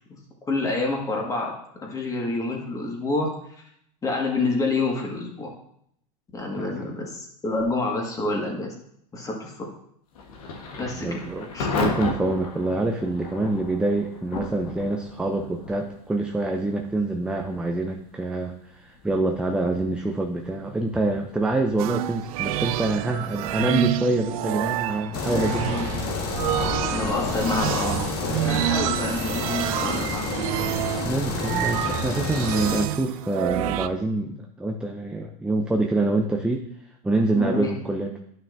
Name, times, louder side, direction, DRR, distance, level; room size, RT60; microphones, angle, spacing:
voice 1, 0.5-1.5 1.8-3.3 4.0-5.5 6.3-8.7 9.1-9.7 10.8-11.2 11.5-11.7 25.3-25.9 26.6-30.2 30.5-30.8 37.3-37.7, left 2 dB, 20° left, 0 dB, 1.7 m, -28 dB
Thunder / Rain, 10.1-26.8, left 3 dB, 80° left, 1.3 m, -37 dB
voice 2, 10.7-11.5 11.8-25.7 31.0-36.7 37.0-38.1, right 2 dB, 5° right, 3 dB, 0.5 m, -26 dB
sound 1, 21.8-33.9, right 13 dB, 70° right, 0.4 m, -28 dB
sound 2, 25.1-32.9, left 3 dB, 55° left, 1.6 m, -29 dB
11.0 x 5.8 x 2.6 m, 0.72 s
supercardioid pair, 130°, 19 cm